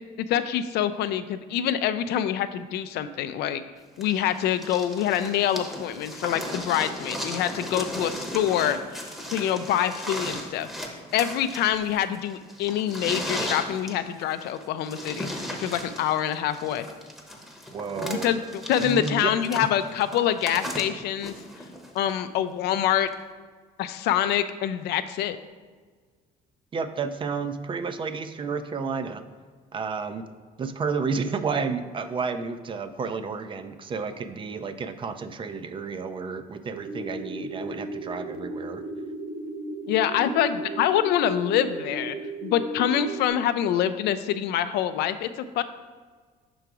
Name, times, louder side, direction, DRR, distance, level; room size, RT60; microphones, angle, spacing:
voice 1, 0.2-3.6 4.0-9.0 9.3-10.7 11.1-15.3 15.6-16.8 18.1-18.4 18.7-21.3 21.9-23.1 23.8-25.4 39.9-42.2 42.4-45.6, left 10 dB, 75° left, 11 dB, 0.4 m, -25 dB
sound 1, 4.0-22.1 23.1-23.2, equal, ahead, 0.8 m, -36 dB
voice 2, 17.7-18.3 18.8-19.3 19.6-19.7 26.7-29.2 29.7-30.2 30.6-38.8, right 5 dB, 30° right, 10 dB, 0.4 m, -31 dB
sound 2, 36.7-43.3, right 2 dB, 65° right, 0.8 m, -35 dB
5.7 x 3.9 x 4.7 m, 1.5 s
cardioid pair, 110°, 17 cm